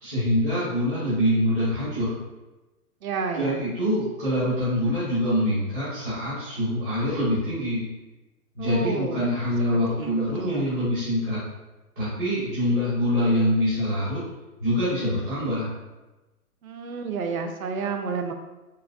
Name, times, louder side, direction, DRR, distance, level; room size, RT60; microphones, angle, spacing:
voice 1, 0.0-2.1 3.3-7.8 8.5-11.4 12.0-14.2 14.6-15.7, equal, 35° right, -12 dB, 1.2 m, -25 dB
voice 2, 3.0-3.6 8.6-9.3 9.7-10.1 10.4-10.7 16.6-18.3, right 5 dB, 65° right, 6 dB, 0.5 m, -30 dB
3.8 x 2.2 x 2.5 m, 1.1 s
hypercardioid pair, 175°, 45 cm